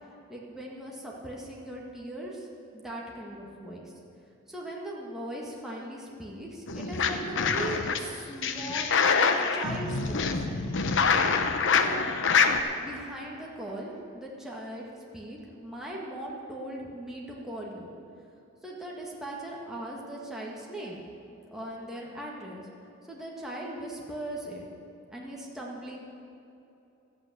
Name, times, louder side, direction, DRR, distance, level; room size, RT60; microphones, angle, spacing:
voice 1, 0.3-2.5 2.7-3.9 4.5-10.4 11.7-12.0 12.8-14.9 15.1-17.9 18.6-21.0 21.3-22.7 23.1-24.7 25.1-26.0, right 1 dB, ahead, -4 dB, 1.8 m, -39 dB
sound 1, 6.7-8.0 8.4-12.6, left 5 dB, 65° left, 0.9 m, -25 dB
13.0 x 8.9 x 8.0 m, 2.9 s
head